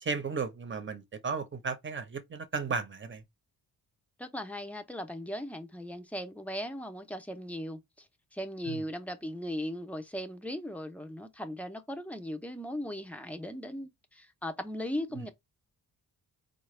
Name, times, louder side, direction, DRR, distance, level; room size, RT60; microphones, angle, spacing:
voice 1, 0.0-3.2 8.7-8.8 15.1-15.2, right 5 dB, 30° right, 0.7 m, -35 dB
voice 2, 4.2-15.3, equal, 5° left, 0.6 m, -38 dB
4.9 x 2.3 x 3.2 m
wide cardioid pair, 160°, 39 cm